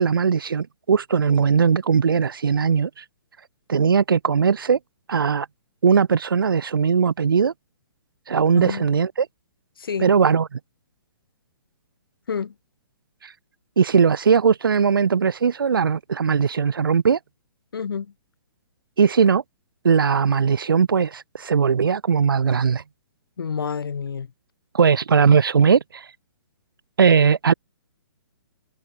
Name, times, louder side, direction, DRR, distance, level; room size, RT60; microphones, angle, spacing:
voice 1, 0.0-3.0 3.7-4.8 5.1-5.5 5.8-7.5 8.3-9.3 10.0-10.6 13.2-13.3 13.8-17.2 19.0-19.4 19.8-22.8 24.7-26.1 27.0-27.5, right 6 dB, 70° right, 3.1 m, -19 dB
voice 2, 8.5-8.9 9.8-10.1 12.3-12.5 17.7-18.1 23.4-24.3, left 6 dB, 80° left, 1.8 m, -28 dB
hypercardioid pair, 180°, 12 cm